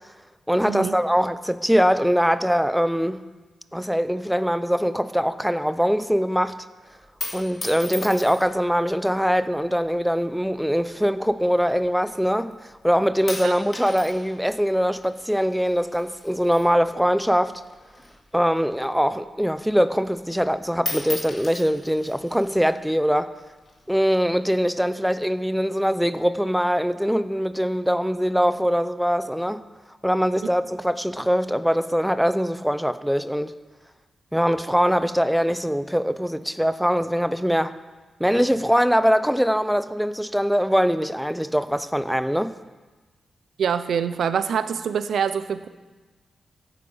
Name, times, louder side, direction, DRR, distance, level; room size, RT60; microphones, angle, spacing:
voice 1, 0.5-3.2 3.7-6.6 7.3-12.6 12.8-17.5 18.3-23.3 23.9-29.6 30.0-33.5 34.3-37.7 38.2-42.5, equal, ahead, 13 dB, 0.5 m, -22 dB
sound 1, 6.9-8.7 9.5-10.0 10.8-12.2 12.5-12.9 13.3-17.3 17.6-19.3 19.7-19.8 20.1-20.5 20.8-22.6 23.4-24.0, left 2 dB, 30° left, 2.6 m, -37 dB
voice 2, 43.6-45.7, right 7 dB, 80° right, 12 dB, 0.7 m, -25 dB
15.5 x 10.0 x 5.6 m, 1.2 s
wide cardioid pair, 135°, 0 cm